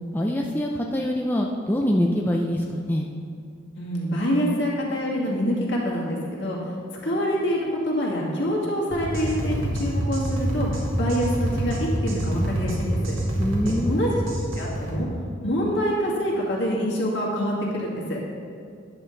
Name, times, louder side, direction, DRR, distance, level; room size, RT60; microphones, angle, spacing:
voice 1, 0.1-3.1 13.4-14.0, equal, 10° left, 0 dB, 0.4 m, -24 dB
voice 2, 3.8-6.6 7.0-10.7 11.0-13.1 13.6-14.2 14.6-15.1 15.4-18.2, equal, 60° left, -4 dB, 2.0 m, -26 dB
sound 1, 8.9-15.0, right 1 dB, 90° right, 1.7 m, -27 dB
10.0 x 7.7 x 3.9 m, 2.4 s
head